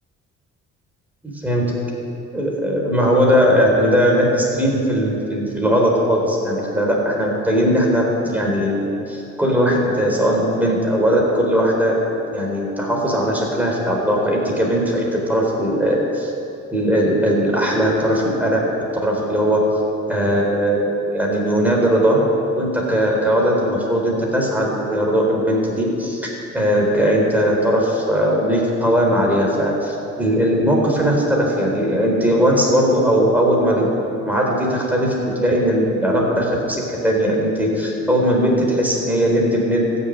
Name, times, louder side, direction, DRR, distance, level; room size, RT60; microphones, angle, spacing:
voice 1, 2.3-12.0 12.3-16.3 16.7-18.6 19.0-19.6 20.1-22.2 22.5-26.3 26.5-40.0, equal, 5° right, -2 dB, 3.9 m, -19 dB
14.0 x 7.0 x 9.3 m, 2.8 s
cardioid pair, 90°, 30 cm